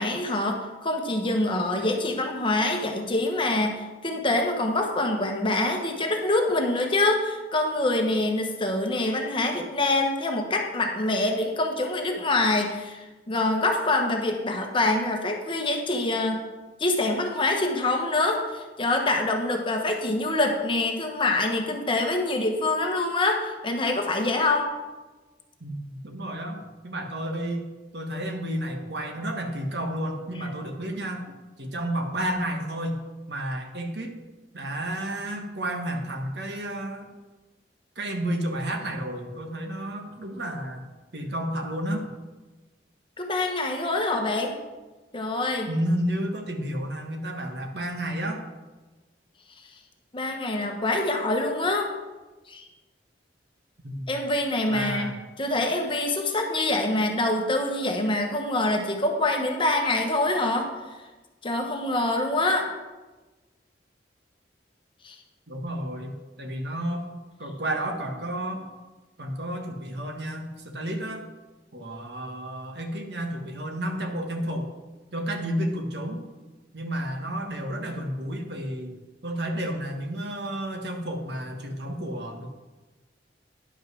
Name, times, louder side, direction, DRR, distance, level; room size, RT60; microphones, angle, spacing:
voice 1, 0.0-16.4 16.8-24.7 43.2-44.5 45.1-45.7 50.1-51.9 52.5-52.7 54.1-60.7 61.4-62.7 65.0-65.1, left 2 dB, 30° left, 3 dB, 1.1 m, -25 dB
voice 2, 25.6-27.7 27.9-33.0 33.3-34.2 34.5-37.2 38.0-40.9 41.1-42.1 45.7-48.4 53.8-54.2 54.7-55.2 65.5-67.1 67.4-68.7 69.2-71.3 71.7-74.7 75.1-76.2 76.7-78.9 79.2-82.5, right 1 dB, 65° right, 4 dB, 1.3 m, -31 dB
10.0 x 5.5 x 6.1 m, 1.2 s
head